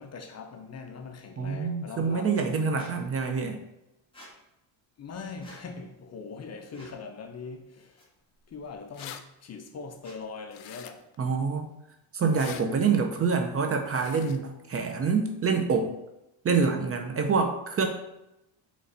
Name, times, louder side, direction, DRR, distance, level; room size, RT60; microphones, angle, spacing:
voice 1, 0.0-2.9 5.0-8.1 8.5-11.0 12.5-13.0, left 5 dB, 35° left, 0.5 m, -41 dB
voice 2, 1.4-3.6 11.2-11.7 12.1-15.9 16.4-17.9, right 5 dB, 30° right, 0.5 m, -26 dB
Squeak, 2.8-2.9 4.1-4.3 5.4-5.6 6.7-7.0 8.0-8.1 8.9-9.1 10.0-10.2, equal, 10° left, 1.4 m, -50 dB
sound 1, 8.5-8.6 8.7-9.2 10.5-11.2 12.2-12.6 13.9-14.4, left 10 dB, 85° left, 0.5 m, -43 dB
4.1 x 3.2 x 3.9 m
cardioid pair, 110°, 45 cm